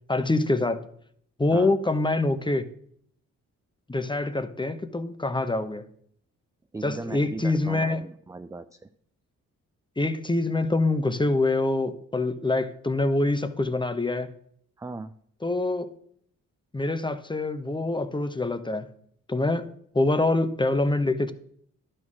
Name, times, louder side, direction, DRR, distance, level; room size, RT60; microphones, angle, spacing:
voice 1, 0.1-0.9 1.4-2.6 3.9-5.8 6.8-8.0 10.0-14.3 15.4-15.9 16.7-18.9 19.3-19.7 19.9-21.3, left 2 dB, 10° left, 0.8 m, -25 dB
voice 2, 6.7-8.9 14.8-15.1, right 3 dB, 10° right, 0.4 m, -38 dB
10.5 x 4.4 x 6.1 m
hypercardioid pair, 45°, 38 cm